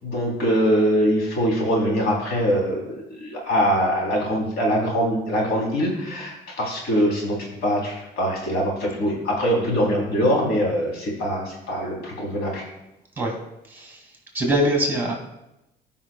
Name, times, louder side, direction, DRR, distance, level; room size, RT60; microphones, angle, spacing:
voice 1, 0.0-12.6, equal, 75° left, -2 dB, 3.3 m, -23 dB
voice 2, 13.7-14.1 14.3-15.1, right 1 dB, 10° right, 0 dB, 2.2 m, -23 dB
16.0 x 5.5 x 2.3 m, 0.89 s
cardioid pair, 110°, 17 cm